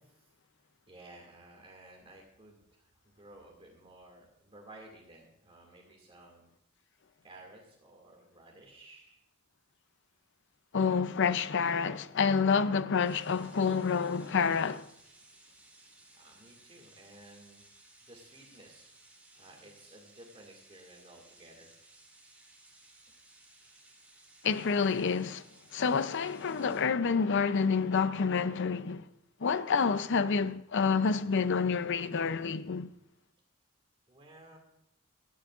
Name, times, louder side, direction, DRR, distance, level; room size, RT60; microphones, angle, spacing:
voice 1, 0.9-6.5 7.2-9.2 16.1-17.6 18.0-18.9 19.4-21.7 34.1-34.6, right 2 dB, 25° right, 2.3 m, -55 dB
voice 2, 10.7-14.9 24.4-25.4 25.7-29.1 29.4-32.9, left 5 dB, 60° left, 0.6 m, -28 dB
sound 1, 13.0-26.8, right 2 dB, 5° right, 4.5 m, -59 dB
18.5 x 13.0 x 2.5 m
head